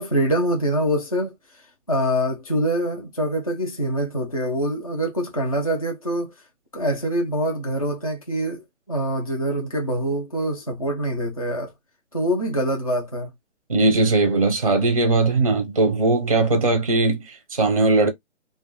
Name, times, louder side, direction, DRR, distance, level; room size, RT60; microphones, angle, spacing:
voice 1, 0.0-1.3 1.9-6.3 6.7-11.7 12.1-13.3, equal, 30° left, 0.4 m, -24 dB
voice 2, 13.7-18.1, right 2 dB, 30° right, 0.5 m, -19 dB
2.2 x 2.1 x 3.0 m
hypercardioid pair, 175°, 36 cm